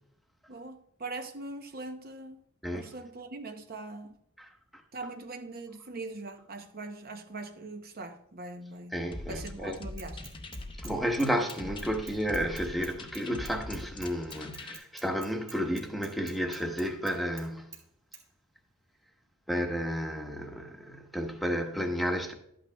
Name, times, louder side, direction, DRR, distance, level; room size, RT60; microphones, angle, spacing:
voice 1, 0.5-2.4 2.7-4.1 4.9-9.0 9.3-10.3, right 2 dB, 45° right, 0.7 m, -41 dB
voice 2, 8.9-9.8 10.8-17.7 19.5-22.3, equal, ahead, 1.0 m, -32 dB
sound 1, 9.1-14.8, left 2 dB, 25° left, 0.7 m, -43 dB
Bicycle / Mechanisms, 10.0-10.9 11.2-17.5 17.7-17.8 18.1-18.2, right 3 dB, 15° right, 1.4 m, -48 dB
12.0 x 8.8 x 2.2 m
head